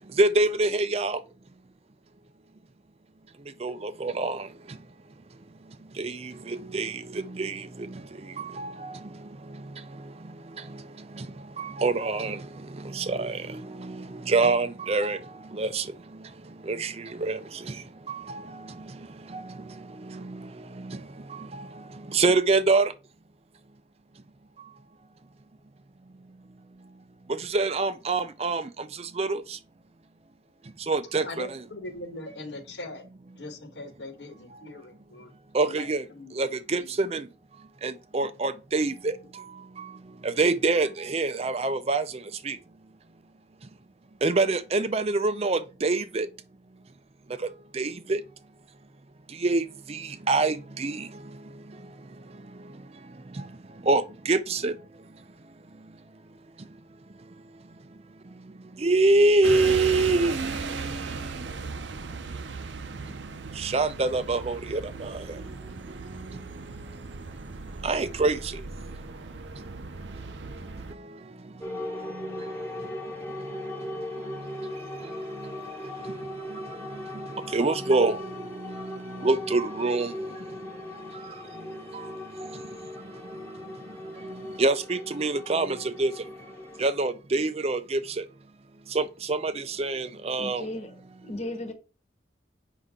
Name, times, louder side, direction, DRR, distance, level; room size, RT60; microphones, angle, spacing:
voice 1, 0.2-1.2 3.6-4.5 6.0-8.0 8.4-9.0 10.6-10.8 11.1-11.3 11.6-15.2 15.5-15.9 16.6-17.8 18.1-18.7 19.3-19.5 20.0-20.5 20.8-21.0 21.3-21.7 22.1-22.9 27.3-29.6 30.9-31.6 35.5-36.0 36.3-37.2 37.8-39.5 39.8-39.9 40.2-42.1 42.4-42.6 44.2-46.3 47.7-48.2 49.4-51.1 53.3-53.4 53.8-54.7 58.8-61.4 63.6-65.4 66.1-66.4 67.8-68.6 71.7-72.4 75.0-75.5 75.8-76.1 76.5-80.2 81.1-81.3 81.9-82.1 82.4-82.5 84.3-86.1 86.8-88.3 88.9-90.7, right 3 dB, 35° right, 0.5 m, -26 dB
voice 2, 31.2-33.0 33.4-35.3 35.6-35.9 36.1-36.4 36.8-36.9, left 2 dB, 75° left, 1.5 m, -40 dB
sound 1, 59.4-70.9, right 4 dB, 80° right, 0.7 m, -37 dB
sound 2, 71.6-86.8, left 1 dB, 10° left, 1.5 m, -39 dB
voice 3, 90.4-90.9 91.2-91.7, left 1 dB, 35° left, 1.3 m, -35 dB
8.0 x 5.5 x 3.7 m
head